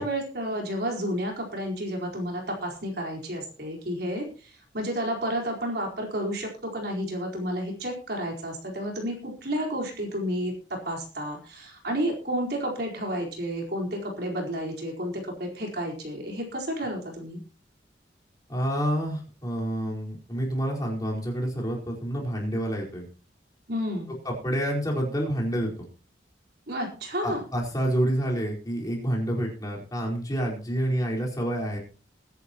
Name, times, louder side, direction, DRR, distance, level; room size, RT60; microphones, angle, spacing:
voice 1, 0.0-17.4 23.7-24.1 26.7-27.4, equal, 60° right, 0 dB, 4.5 m, -31 dB
voice 2, 18.5-23.1 24.2-25.7 27.2-31.8, equal, 20° left, -2 dB, 4.6 m, -28 dB
22.0 x 11.0 x 3.0 m, 0.36 s
head